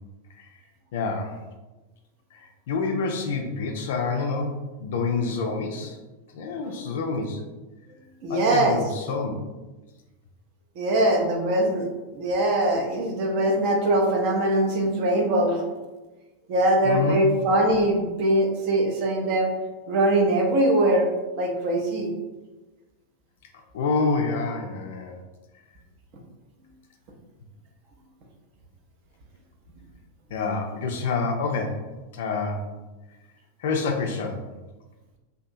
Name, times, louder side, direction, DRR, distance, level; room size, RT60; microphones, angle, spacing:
voice 1, 0.9-1.4 2.3-2.4 2.7-6.0 6.3-7.4 8.3-9.3 16.8-17.2 23.7-25.2 30.3-31.8 32.1-32.7 33.6-34.5, left 4 dB, 55° left, 3 dB, 0.3 m, -27 dB
voice 2, 8.2-8.8 10.8-11.9 12.1-15.7 16.5-19.5 19.9-21.1 21.4-22.1, right 1 dB, 45° right, 1 dB, 0.5 m, -22 dB
2.6 x 2.4 x 2.5 m, 1.1 s
figure-of-eight pair, 90°, 0 cm